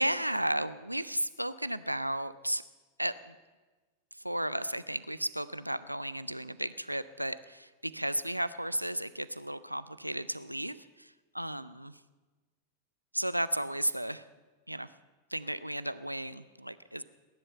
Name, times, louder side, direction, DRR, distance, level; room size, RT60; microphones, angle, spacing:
voice 1, 0.0-2.6 3.0-3.3 4.2-12.0 13.1-14.3 14.7-14.9 15.3-17.0, right 1 dB, 90° right, 16 dB, 0.5 m, -34 dB
19.0 x 11.0 x 6.9 m, 1.3 s
figure-of-eight pair, 90°, 0 cm